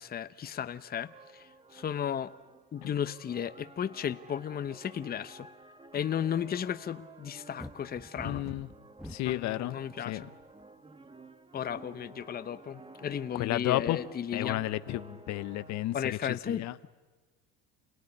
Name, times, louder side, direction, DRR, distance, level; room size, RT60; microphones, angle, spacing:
voice 1, 0.0-2.3 2.7-5.5 5.9-8.4 9.2-10.3 11.5-14.6 15.9-16.9, left 9 dB, 30° left, 12 dB, 0.9 m, -35 dB
sound 1, 0.9-15.9, right 2 dB, 15° right, 1.7 m, -53 dB
sound 2, 7.6-9.5 10.2-10.6, left 1 dB, ahead, 0.9 m, -44 dB
voice 2, 8.2-8.7 9.1-9.8 10.1-10.2 13.3-14.0 14.3-16.2 16.5-16.7, left 16 dB, 60° left, 14 dB, 1.0 m, -32 dB
28.5 x 18.0 x 9.9 m, 1.3 s
supercardioid pair, 100°, 32 cm